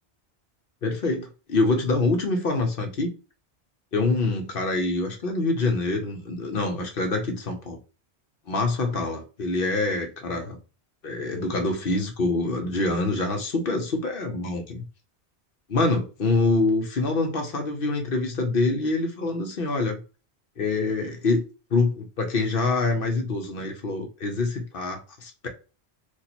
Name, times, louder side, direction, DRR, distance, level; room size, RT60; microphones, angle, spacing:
voice 1, 0.8-3.1 3.9-7.8 8.5-10.6 11.0-14.8 15.7-20.0 20.6-21.4 21.7-25.5, left 3 dB, 60° left, 0.9 m, -25 dB
2.9 x 2.5 x 4.1 m
omnidirectional pair, 1.1 m